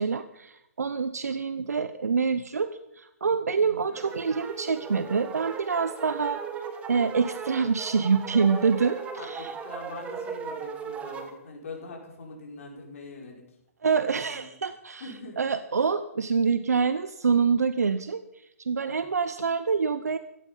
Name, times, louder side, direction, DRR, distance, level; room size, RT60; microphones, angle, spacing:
voice 1, 0.0-6.4 6.9-9.5 13.8-15.0 15.4-18.2 18.6-20.2, right 5 dB, 80° right, 12 dB, 0.9 m, -26 dB
voice 2, 3.5-4.0 9.1-13.6 13.8-14.5 15.0-15.4 15.8-15.9 18.9-19.0, left 3 dB, 60° left, 0 dB, 5.3 m, -43 dB
sound 1, 3.9-11.3, right 6 dB, 15° right, 1.6 m, -37 dB
16.0 x 14.0 x 5.6 m, 0.82 s
hypercardioid pair, 135°, 8 cm